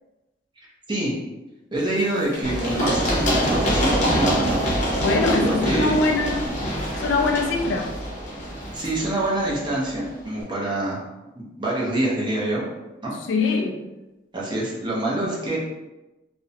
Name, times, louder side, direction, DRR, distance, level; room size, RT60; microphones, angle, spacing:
voice 1, 1.7-4.8 5.4-6.0 8.7-11.0 11.4-12.6 13.0-13.1 14.3-15.6, right 1 dB, 25° right, -4 dB, 0.6 m, -26 dB
sound 1, 1.8-8.2 8.5-9.4, left 1 dB, 15° left, 0.8 m, -41 dB
Run, 2.4-10.1, equal, 40° left, 0.6 m, -25 dB
voice 2, 5.0-6.5 7.0-7.9 13.3-13.8, left 3 dB, 80° left, 3 dB, 0.3 m, -22 dB
2.4 x 2.0 x 2.6 m, 1.0 s
head